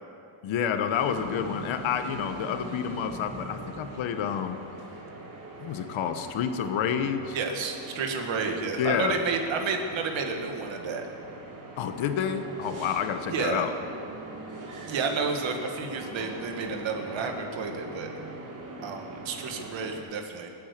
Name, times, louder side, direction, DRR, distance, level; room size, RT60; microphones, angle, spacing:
voice 1, 0.4-4.6 5.6-7.4 8.8-9.2 11.8-13.7, left 8 dB, 70° left, 8 dB, 1.3 m, -29 dB
sound 1, 1.0-20.0, right 2 dB, 40° right, 3.3 m, -42 dB
voice 2, 7.3-11.1 13.3-13.6 14.8-18.1 18.8-20.5, right 4 dB, 65° right, 4 dB, 2.1 m, -31 dB
22.5 x 9.4 x 6.8 m, 2.7 s
cardioid pair, 125°, 48 cm